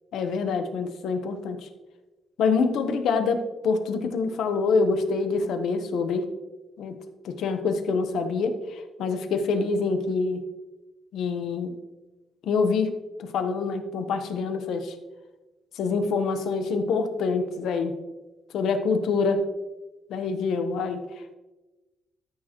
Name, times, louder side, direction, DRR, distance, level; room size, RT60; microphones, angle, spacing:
voice 1, 0.1-1.7 2.4-6.2 6.8-6.9 7.2-10.4 11.1-11.7 12.4-12.9 13.2-14.9 15.8-17.9 18.5-19.4 20.1-21.0, left 4 dB, 75° left, 8 dB, 1.0 m, -26 dB
13.5 x 6.5 x 3.1 m, 1.1 s
cardioid pair, 130°, 0 cm